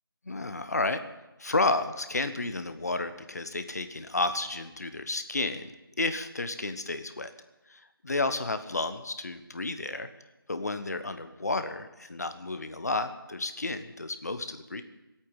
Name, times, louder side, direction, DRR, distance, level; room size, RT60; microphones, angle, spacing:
voice 1, 0.2-1.0 1.4-7.3 7.7-10.1 10.5-14.8, left 2 dB, 45° left, 10 dB, 1.1 m, -31 dB
17.5 x 8.7 x 8.9 m, 1.0 s
figure-of-eight pair, 175°, 13 cm